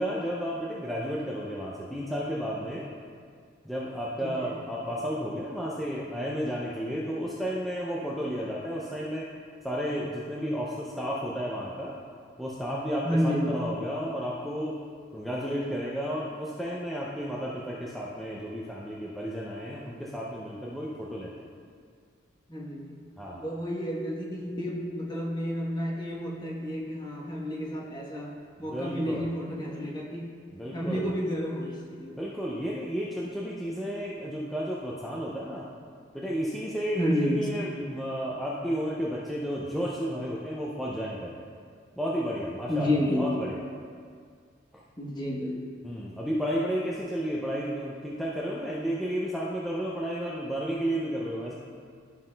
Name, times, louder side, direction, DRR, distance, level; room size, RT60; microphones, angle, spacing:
voice 1, 0.0-2.9 3.6-9.3 9.6-12.0 12.4-14.8 15.1-21.3 23.2-23.5 28.6-29.3 30.5-31.1 32.1-35.7 36.1-41.3 42.0-43.6 44.7-44.8 45.8-51.5, equal, ahead, -6 dB, 0.4 m, -32 dB
voice 2, 4.2-4.5 13.0-13.6 22.5-23.0 23.3-30.3 30.7-32.1 36.9-37.5 42.7-43.3 45.0-45.6, left 1 dB, 20° left, -3 dB, 0.9 m, -30 dB
11.0 x 5.6 x 2.2 m, 2.1 s
head